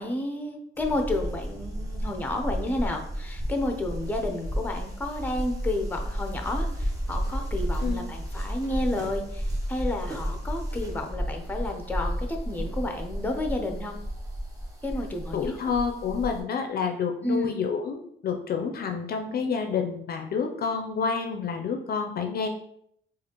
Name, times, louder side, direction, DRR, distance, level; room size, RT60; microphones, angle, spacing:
voice 1, 0.0-14.0 14.8-15.7 17.2-17.6, left 1 dB, 10° left, 4 dB, 0.6 m, -31 dB
sound 1, 0.8-16.4, equal, 15° right, 1.0 m, -32 dB
voice 2, 15.3-22.5, left 6 dB, 50° left, 4 dB, 0.4 m, -29 dB
4.0 x 2.5 x 2.9 m, 0.70 s
cardioid pair, 90°, 20 cm